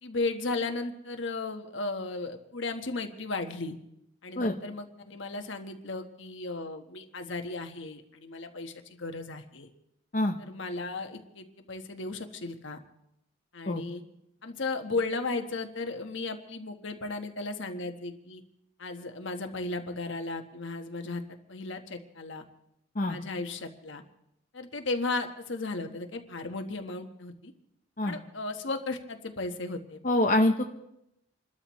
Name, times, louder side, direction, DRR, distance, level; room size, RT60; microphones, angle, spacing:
voice 1, 0.0-3.7 4.2-9.7 10.4-12.8 13.5-14.0 14.4-18.4 18.8-21.2 21.5-22.4 23.1-24.0 24.5-27.5 28.0-30.0, left 3 dB, 70° left, 6 dB, 1.3 m, -35 dB
voice 2, 30.0-30.6, left 1 dB, 40° left, 3 dB, 0.8 m, -25 dB
29.0 x 13.0 x 3.1 m, 0.81 s
head